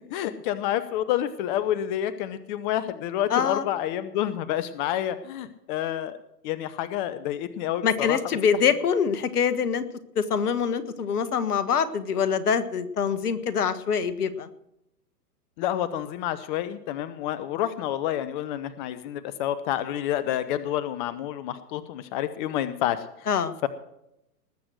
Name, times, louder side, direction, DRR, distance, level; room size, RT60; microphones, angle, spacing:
voice 1, 0.1-6.1 6.4-8.2 15.6-23.0 23.6-23.7, left 11 dB, 30° left, 14 dB, 0.7 m, -29 dB
voice 2, 3.3-3.6 7.8-9.8 10.1-14.5 23.3-23.6, left 7 dB, 65° left, 12 dB, 1.6 m, -24 dB
19.5 x 7.8 x 6.3 m, 0.83 s
hypercardioid pair, 120°, 49 cm